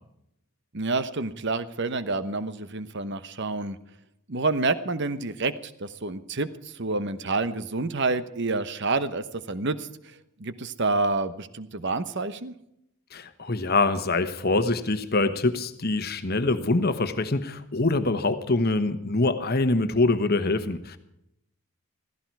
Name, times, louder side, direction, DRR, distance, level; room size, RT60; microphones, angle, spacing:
voice 1, 0.7-3.8 4.3-12.5, right 3 dB, 50° right, 13 dB, 1.0 m, -28 dB
voice 2, 13.1-21.0, left 2 dB, 45° left, 10 dB, 1.2 m, -24 dB
16.0 x 15.0 x 4.7 m, 0.78 s
head